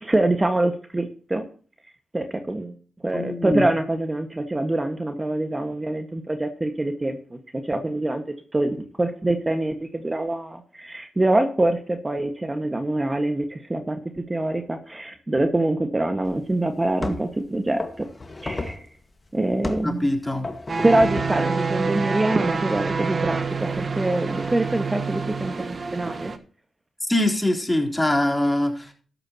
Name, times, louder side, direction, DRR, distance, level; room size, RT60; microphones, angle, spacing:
voice 1, 0.0-1.4 2.1-2.7 3.0-7.4 7.6-8.2 8.5-14.0 14.3-18.1 18.4-18.9 19.3-20.1 20.8-26.3, right 2 dB, 25° right, 6 dB, 1.6 m, -25 dB
voice 2, 3.1-3.6 19.8-20.5 27.0-28.9, left 1 dB, 15° left, 2 dB, 3.8 m, -23 dB
sound 1, 16.3-16.4 17.0-17.4 17.8-18.9 19.6-19.9 20.4-21.4, left 2 dB, 35° left, 1.8 m, -33 dB
sound 2, 20.7-26.4, right 4 dB, 50° right, 1.3 m, -27 dB
13.0 x 11.5 x 3.0 m, 0.41 s
supercardioid pair, 45°, 0 cm